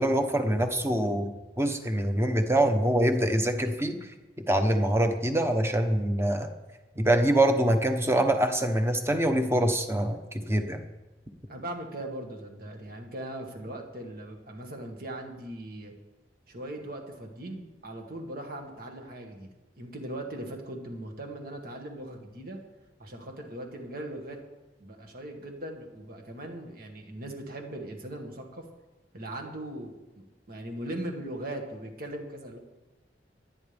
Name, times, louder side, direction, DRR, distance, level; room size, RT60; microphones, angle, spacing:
voice 1, 0.0-4.0 4.5-6.5 7.0-10.8, right 1 dB, 15° right, 6 dB, 1.1 m, -25 dB
voice 2, 11.5-15.9 16.5-19.5 19.8-22.6 23.0-24.4 24.8-28.7 29.1-32.6, right 1 dB, 55° right, 2 dB, 2.0 m, -39 dB
26.0 x 9.8 x 3.6 m, 1.1 s
head